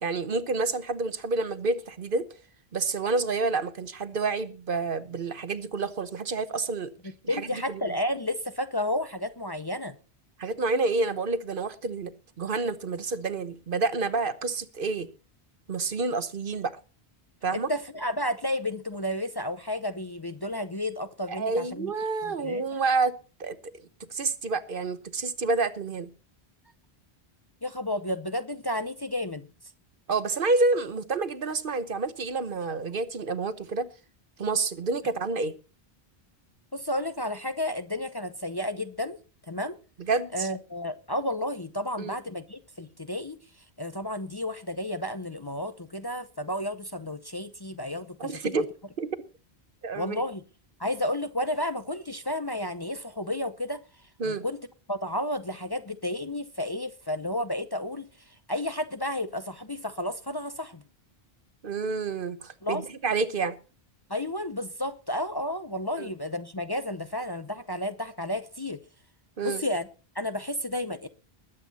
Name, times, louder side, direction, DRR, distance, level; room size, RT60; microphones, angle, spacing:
voice 1, 0.0-2.3 2.7-6.9 7.3-7.5 10.4-12.1 12.4-15.1 15.7-16.8 17.4-17.7 21.3-23.1 23.4-26.1 30.1-33.9 34.4-35.5 40.1-40.5 42.0-42.2 48.2-48.7 49.0-49.1 49.8-50.2 54.2-54.4 61.6-63.6 66.0-66.1 69.4-69.6, right 3 dB, 55° right, 1.1 m, -28 dB
voice 2, 7.3-10.0 17.5-21.9 22.2-22.6 27.6-29.5 36.7-39.2 39.5-39.8 40.3-43.4 43.8-48.4 49.9-50.4 50.8-53.8 54.2-54.6 54.9-60.8 62.6-62.8 64.1-68.8 69.4-69.9 70.1-71.1, left 1 dB, 25° left, 0.7 m, -32 dB
21.0 x 8.2 x 4.1 m
omnidirectional pair, 1.1 m